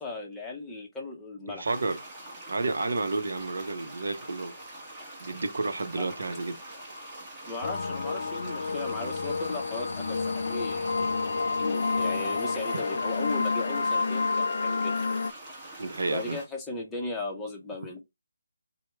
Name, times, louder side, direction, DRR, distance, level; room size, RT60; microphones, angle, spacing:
voice 1, 0.0-1.7 6.0-6.1 7.5-10.9 11.6-15.0 16.1-18.0, left 3 dB, 10° left, 0.7 m, -37 dB
voice 2, 1.5-2.0 2.5-4.6 5.2-6.6 12.7-12.8 15.8-16.4, right 3 dB, 65° right, 0.6 m, -31 dB
sound 1, 1.6-16.4, right 1 dB, 20° right, 1.1 m, -44 dB
sound 2, 7.6-15.3, left 4 dB, 60° left, 0.3 m, -29 dB
4.3 x 2.0 x 3.3 m
figure-of-eight pair, 160°, 0 cm